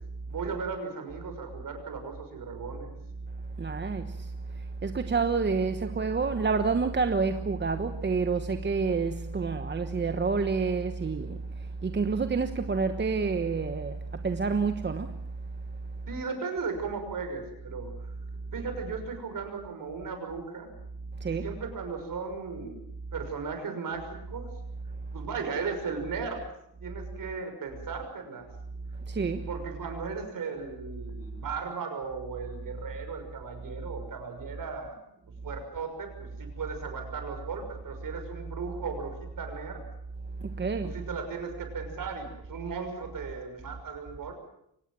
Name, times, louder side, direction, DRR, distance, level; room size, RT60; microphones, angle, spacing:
voice 1, 0.2-2.9 16.1-17.9 18.5-20.7 21.2-22.8 23.1-24.5 25.1-26.4 26.8-28.5 29.3-35.0 35.4-39.8 40.8-44.3, right 5 dB, 55° right, 6.1 m, -36 dB
voice 2, 3.6-15.1 21.2-21.4 29.1-29.5 40.4-40.9, right 4 dB, 25° right, 1.1 m, -28 dB
24.0 x 19.0 x 7.6 m
cardioid pair, 120°, 40 cm